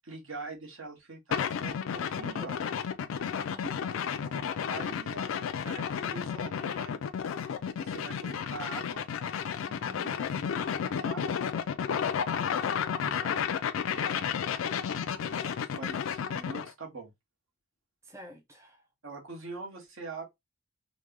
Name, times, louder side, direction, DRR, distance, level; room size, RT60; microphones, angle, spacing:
voice 1, 0.0-2.6 4.6-5.3 5.6-6.9 7.7-9.0 10.9-11.2 12.4-13.3 15.1-17.1 19.0-20.2, right 3 dB, 75° right, 1.1 m, -43 dB
sound 1, 1.3-16.7, left 7 dB, 75° left, 0.3 m, -32 dB
voice 2, 3.3-3.8 9.6-10.2 13.9-14.3 18.0-18.9, left 1 dB, 15° right, 0.6 m, -48 dB
3.1 x 2.1 x 3.5 m
head